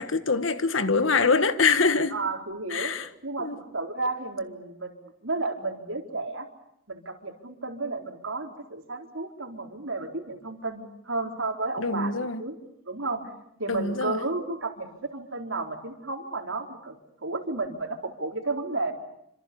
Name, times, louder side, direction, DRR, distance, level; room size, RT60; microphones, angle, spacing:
voice 1, 0.0-2.2 2.7-3.1 3.4-3.6 11.8-12.4 13.7-14.2, left 4 dB, 85° left, 1.6 m, -24 dB
voice 2, 2.1-2.9 3.2-6.5 6.9-12.1 12.4-12.6 12.9-13.2 13.6-18.9, right 3 dB, 80° right, 4.3 m, -32 dB
27.5 x 26.0 x 7.0 m
head